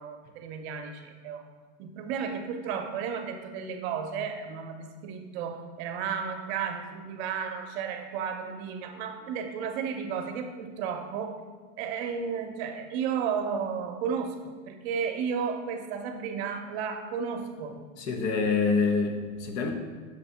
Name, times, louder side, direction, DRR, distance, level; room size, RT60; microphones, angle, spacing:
voice 1, 0.0-1.5 1.8-11.4 11.8-17.8, right 6 dB, 55° right, 5 dB, 0.7 m, -33 dB
voice 2, 18.0-19.7, left 4 dB, 65° left, 4 dB, 0.9 m, -26 dB
6.4 x 2.6 x 5.6 m, 1.4 s
supercardioid pair, 140°, 39 cm